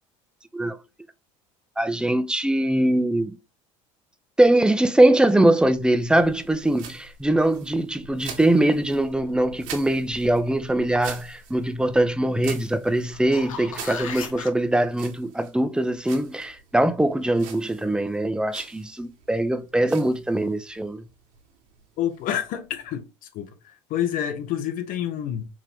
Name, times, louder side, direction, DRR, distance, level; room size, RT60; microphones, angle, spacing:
voice 1, 1.8-3.4 4.4-21.0, right 1 dB, 5° right, 0.6 m, -22 dB
sound 1, 5.6-22.9, right 6 dB, 70° right, 1.6 m, -44 dB
sound 2, 13.1-14.5 19.3-19.4, left 6 dB, 90° left, 0.8 m, -36 dB
voice 2, 22.0-23.0 23.3-25.5, left 10 dB, 55° left, 1.1 m, -28 dB
5.0 x 2.8 x 3.5 m
hypercardioid pair, 80°, 17 cm